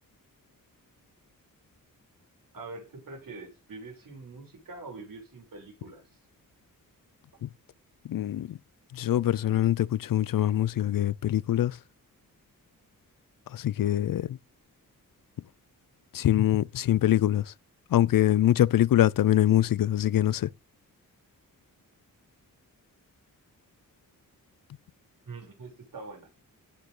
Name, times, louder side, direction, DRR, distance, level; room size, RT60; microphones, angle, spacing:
voice 1, 2.5-6.0 25.3-26.3, right 3 dB, 75° right, 7.3 m, -44 dB
voice 2, 8.0-8.6 8.9-11.8 13.5-14.4 16.1-17.5 17.9-20.5, left 12 dB, 75° left, 0.5 m, -24 dB
16.5 x 9.2 x 3.8 m
wide cardioid pair, 175°, 34 cm